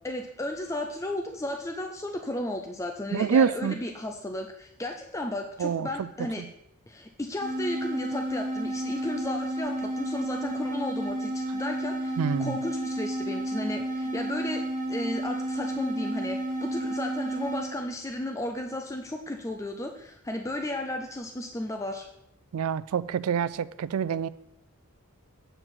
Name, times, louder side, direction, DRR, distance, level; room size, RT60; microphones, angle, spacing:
voice 1, 0.0-6.5 6.9-22.1, left 1 dB, 15° left, 4 dB, 0.4 m, -34 dB
voice 2, 3.1-3.7 5.6-6.1 12.2-12.6 22.5-24.3, right 7 dB, 75° right, 17 dB, 0.4 m, -26 dB
sound 1, 7.4-17.8, right 1 dB, 40° right, 1.9 m, -31 dB
7.9 x 4.7 x 5.7 m, 0.80 s
head